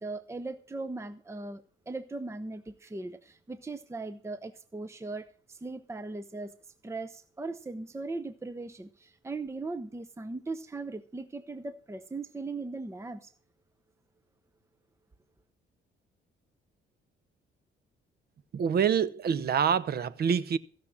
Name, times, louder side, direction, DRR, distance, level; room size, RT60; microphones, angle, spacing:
voice 1, 0.0-6.5 6.8-13.3, right 3 dB, 15° right, 0.8 m, -39 dB
voice 2, 18.5-20.6, right 7 dB, 50° right, 0.8 m, -26 dB
15.5 x 6.5 x 7.2 m
cardioid pair, 90°, 20 cm